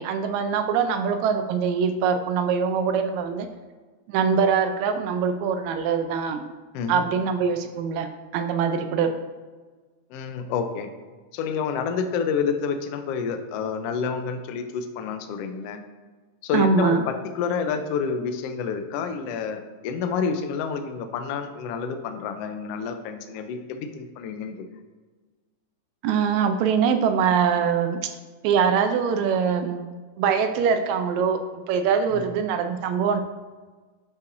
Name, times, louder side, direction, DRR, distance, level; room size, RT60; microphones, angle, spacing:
voice 1, 0.0-3.5 4.1-6.5 6.9-9.2 16.5-17.0 26.0-28.2 28.4-29.8 30.2-33.2, right 6 dB, 80° right, 8 dB, 1.8 m, -23 dB
voice 2, 6.7-7.1 10.1-10.9 11.3-15.8 16.4-24.6 32.1-32.2, left 6 dB, 80° left, 7 dB, 1.4 m, -29 dB
11.0 x 5.6 x 2.6 m, 1.4 s
omnidirectional pair, 3.4 m